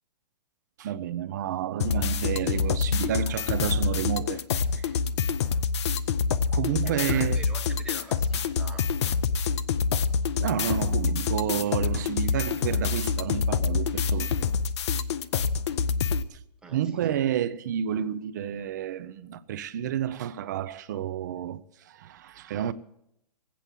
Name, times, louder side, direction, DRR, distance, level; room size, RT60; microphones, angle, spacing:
voice 1, 0.8-4.4 4.7-4.9 6.5-7.4 10.4-14.3 16.3-16.4 16.7-22.7, right 10 dB, 30° right, 0.4 m, -30 dB
sound 1, 1.8-16.2, left 5 dB, 45° left, 0.6 m, -26 dB
voice 2, 6.8-8.8 14.2-14.4 16.6-16.8, right 3 dB, 5° right, 1.1 m, -44 dB
18.5 x 8.4 x 7.3 m
hypercardioid pair, 160°, 20 cm